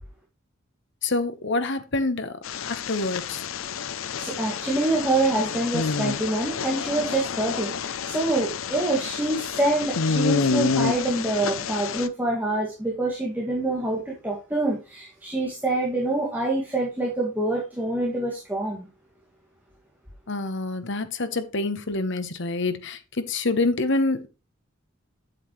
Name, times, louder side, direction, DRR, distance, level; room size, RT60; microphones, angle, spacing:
voice 1, 1.0-2.3 2.6-3.5 20.3-24.3, left 2 dB, 65° left, 1.1 m, -26 dB
sound 1, 2.4-12.1, left 5 dB, 90° left, 0.6 m, -28 dB
voice 2, 4.2-18.9, right 2 dB, 10° right, 2.1 m, -26 dB
7.9 x 7.8 x 3.2 m
head